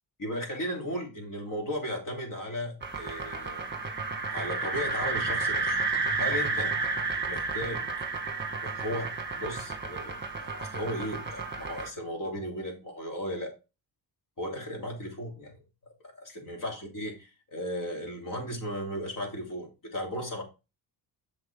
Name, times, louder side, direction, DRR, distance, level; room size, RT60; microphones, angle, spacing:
voice 1, 0.2-3.7 4.3-5.8 6.2-6.7 7.2-7.9 8.6-13.5 14.4-15.6 16.0-20.4, equal, 45° left, 1 dB, 3.4 m, -36 dB
sound 1, 2.8-11.9, right 3 dB, 25° right, 1.3 m, -32 dB
7.9 x 6.4 x 3.6 m, 0.29 s
cardioid pair, 100°, 46 cm